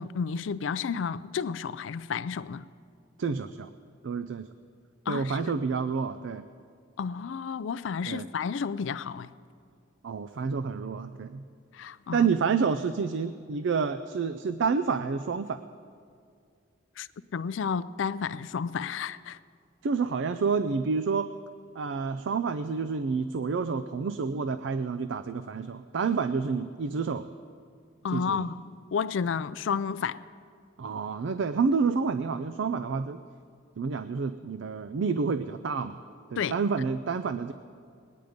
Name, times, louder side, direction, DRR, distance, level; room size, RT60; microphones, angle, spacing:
voice 1, 0.0-2.6 5.1-5.5 7.0-9.3 11.7-12.3 17.0-17.1 17.3-19.4 28.0-30.2 36.4-36.6, left 6 dB, 70° left, 0.4 m, -31 dB
voice 2, 3.2-3.7 4.0-4.5 5.1-6.4 8.1-8.3 10.0-11.4 12.1-15.6 19.8-21.3 21.8-27.3 28.1-28.5 30.8-33.2 33.8-36.0 36.3-37.5, right 5 dB, 65° right, 0.4 m, -29 dB
20.5 x 9.3 x 5.1 m
head